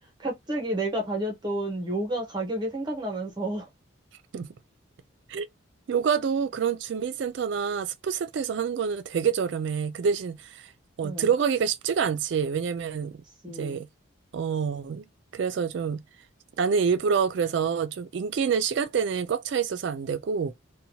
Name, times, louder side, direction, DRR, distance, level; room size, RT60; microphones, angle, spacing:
voice 1, 0.2-3.7 11.0-11.2 13.4-13.8, right 1 dB, 20° right, 0.6 m, -30 dB
voice 2, 5.9-10.7 11.0-13.9 14.3-15.1 15.3-16.0 16.6-20.5, right 6 dB, 60° right, 0.3 m, -27 dB
2.7 x 2.1 x 2.7 m
head